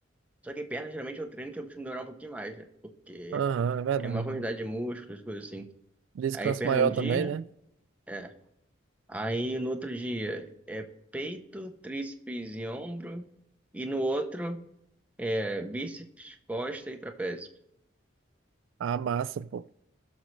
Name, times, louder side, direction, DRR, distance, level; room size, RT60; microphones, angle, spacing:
voice 1, 0.4-2.7 3.1-3.4 4.0-5.7 6.3-7.4 8.1-8.3 9.1-10.9 11.1-13.3 13.7-14.6 15.2-17.5, right 1 dB, 5° right, 0.7 m, -34 dB
voice 2, 3.3-4.3 6.2-7.4 18.8-19.6, right 7 dB, 80° right, 0.3 m, -28 dB
17.5 x 6.3 x 3.2 m
head